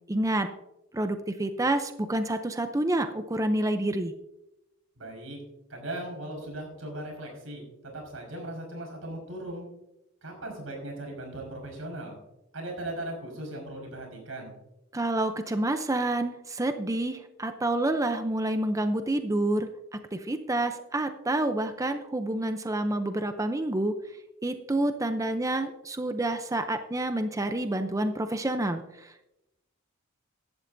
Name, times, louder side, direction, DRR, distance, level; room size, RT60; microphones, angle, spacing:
voice 1, 0.1-0.5 0.9-4.1 14.9-23.9 24.4-29.2, right 1 dB, 15° right, 8 dB, 0.6 m, -28 dB
voice 2, 5.0-5.4 5.7-7.6 7.9-9.7 10.2-12.2 12.5-14.5, right 1 dB, 90° right, 1 dB, 5.1 m, -38 dB
16.0 x 11.5 x 2.7 m, 0.90 s
head